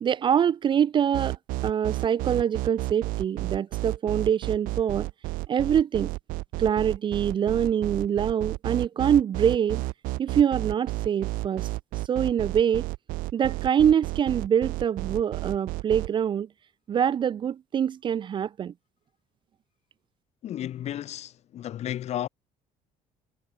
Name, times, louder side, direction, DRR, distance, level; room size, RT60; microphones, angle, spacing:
voice 1, 0.0-1.4 1.6-5.1 5.5-6.1 6.6-9.8 10.2-11.7 12.1-12.9 13.3-16.5 16.9-18.7, right 8 dB, 35° right, 0.6 m, -24 dB
sound 1, 1.1-16.1, right 21 dB, 85° right, 0.9 m, -31 dB
voice 2, 20.4-22.3, left 11 dB, 50° left, 2.2 m, -33 dB
cardioid pair, 135°, 14 cm